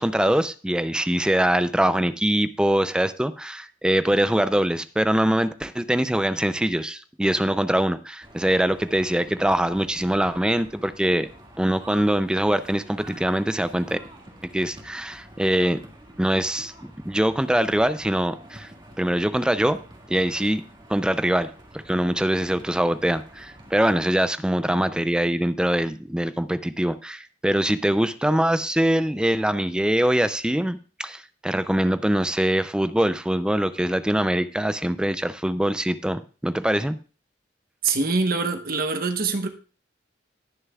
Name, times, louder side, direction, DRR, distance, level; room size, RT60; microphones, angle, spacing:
voice 1, 0.0-11.3 11.6-14.0 14.5-15.8 16.2-18.7 19.0-19.8 20.1-20.6 20.9-21.5 21.9-37.0, right 1 dB, 5° right, 12 dB, 0.4 m, -23 dB
sound 1, 8.2-23.9, right 1 dB, 25° right, 2.0 m, -47 dB
voice 2, 37.8-39.5, right 4 dB, 55° right, 6 dB, 1.1 m, -24 dB
19.5 x 6.6 x 2.3 m, 0.37 s
head